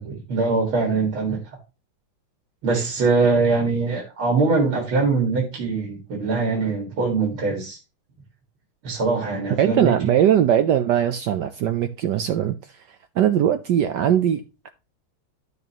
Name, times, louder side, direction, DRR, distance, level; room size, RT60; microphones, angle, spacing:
voice 1, 0.0-1.4 2.6-7.8 8.8-9.9, right 4 dB, 85° right, 2.9 m, -22 dB
voice 2, 9.6-14.7, right 10 dB, 70° right, 1.1 m, -21 dB
11.5 x 6.7 x 3.0 m
omnidirectional pair, 2.2 m